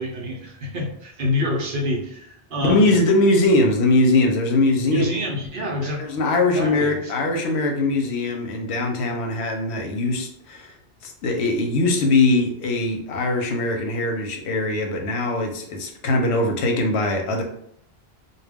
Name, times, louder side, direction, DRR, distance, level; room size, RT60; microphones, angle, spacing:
voice 1, 0.0-3.0 4.9-6.0 6.5-7.3, left 1 dB, 60° right, -1 dB, 0.7 m, -27 dB
voice 2, 2.6-5.1 5.8-10.7 11.0-17.4, left 2 dB, 85° left, 3 dB, 0.9 m, -21 dB
2.2 x 2.1 x 3.4 m, 0.69 s
omnidirectional pair, 1.1 m